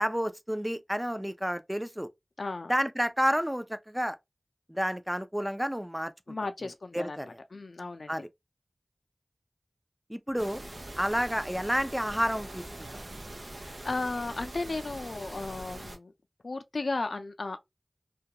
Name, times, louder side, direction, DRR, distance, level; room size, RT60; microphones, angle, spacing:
voice 1, 0.0-2.1 2.7-4.2 4.7-6.4 6.9-7.4 8.1-8.3 10.1-10.6 11.0-13.0, equal, 10° right, 0.4 m, -30 dB
voice 2, 2.4-2.7 6.3-8.1 13.6-16.1 16.4-17.6, left 3 dB, 90° left, 0.4 m, -35 dB
sound 1, 10.4-16.0, right 1 dB, 80° right, 0.6 m, -43 dB
2.3 x 2.2 x 2.8 m
wide cardioid pair, 40°, 0 cm